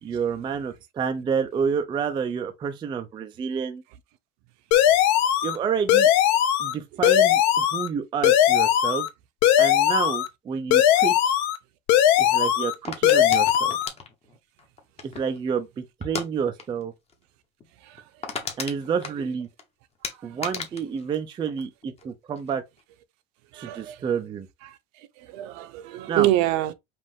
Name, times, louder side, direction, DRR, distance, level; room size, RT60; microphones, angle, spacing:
voice 1, 0.0-3.8 5.4-6.1 6.6-9.1 9.6-11.3 12.2-13.8 15.0-16.9 18.6-19.5 20.2-22.6 23.5-24.5 26.1-26.3, right 6 dB, 15° right, 0.4 m, -29 dB
sound 1, 4.7-5.6 5.9-6.7 7.0-7.9 8.2-9.1 9.4-10.3 10.7-11.6 11.9-12.7 13.0-13.9, left 11 dB, 50° left, 0.8 m, -19 dB
sound 2, 12.8-15.4 16.0-16.3 16.6-16.8 17.1-17.2 17.6-17.7 17.9-19.6 20.0-22.1 22.4-22.8, left 5 dB, 20° left, 0.9 m, -35 dB
voice 2, 23.5-24.0 24.6-24.8 25.2-26.7, right 14 dB, 55° right, 0.7 m, -26 dB
5.3 x 2.5 x 3.5 m
supercardioid pair, 145°, 34 cm